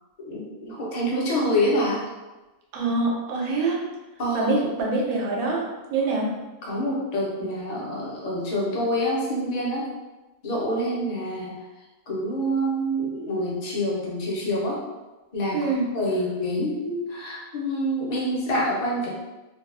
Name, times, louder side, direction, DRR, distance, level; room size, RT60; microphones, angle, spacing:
voice 1, 0.2-2.0 4.2-4.5 6.6-9.9 10.4-11.6 12.1-14.8 15.3-19.1, equal, 50° left, -5 dB, 0.5 m, -26 dB
voice 2, 2.7-3.8 4.3-6.4 15.5-15.9, right 3 dB, 90° right, -1 dB, 1.1 m, -25 dB
2.6 x 2.3 x 2.4 m, 1.1 s
omnidirectional pair, 1.5 m